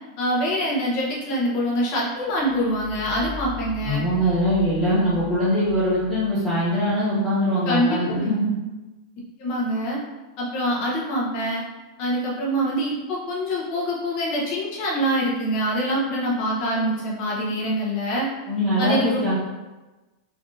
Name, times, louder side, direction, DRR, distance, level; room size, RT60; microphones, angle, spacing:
voice 1, 0.2-4.0 7.7-8.2 9.4-10.0 10.4-11.6 12.0-18.3 18.8-19.2, equal, 35° left, -4 dB, 0.7 m, -25 dB
sound 1, 2.3-6.9, left 4 dB, 65° right, 0.7 m, -40 dB
voice 2, 3.8-8.5 18.5-19.3, equal, 5° left, -16 dB, 1.0 m, -22 dB
3.3 x 2.4 x 2.6 m, 1.1 s
supercardioid pair, 170°, 3 cm